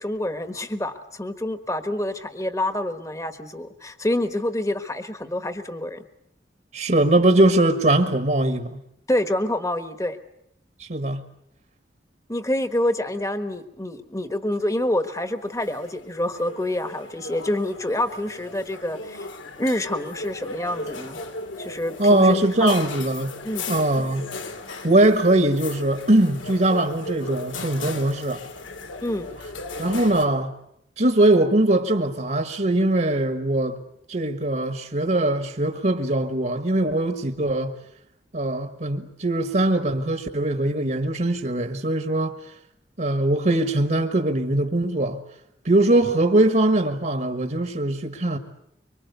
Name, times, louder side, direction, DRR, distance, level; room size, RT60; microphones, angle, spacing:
voice 1, 0.0-6.0 9.1-10.2 12.3-19.3 19.6-21.2 21.6-22.7 23.4-23.7 29.0-29.3, left 1 dB, 15° left, 1.3 m, -27 dB
voice 2, 6.7-8.8 10.8-11.2 22.0-23.3 23.7-24.3 24.8-28.4 29.8-30.5 31.0-33.8 34.1-37.7 38.3-42.3 43.0-45.2 45.6-48.4, right 1 dB, 45° right, 1.5 m, -21 dB
sound 1, 15.2-30.3, left 2 dB, 90° left, 2.7 m, -37 dB
25.0 x 24.5 x 8.2 m
head